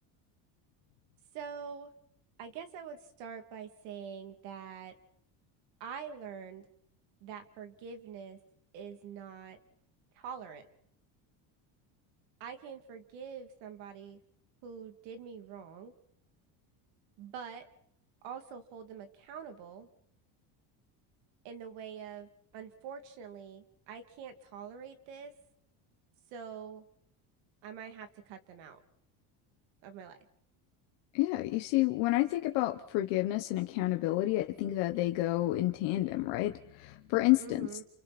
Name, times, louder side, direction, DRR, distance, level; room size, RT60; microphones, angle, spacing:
voice 1, 1.3-1.9 2.4-4.9 5.8-6.6 7.2-8.4 8.7-9.6 10.1-10.7 12.4-14.2 14.6-15.9 17.2-17.7 18.2-19.9 21.4-25.3 26.3-26.8 27.6-28.8 29.8-30.2 37.4-37.8, right 7 dB, 70° right, 7 dB, 2.9 m, -45 dB
voice 2, 31.1-36.5 36.8-37.7, left 17 dB, 75° left, 4 dB, 1.4 m, -29 dB
29.5 x 28.0 x 4.4 m, 0.74 s
cardioid pair, 145°, 44 cm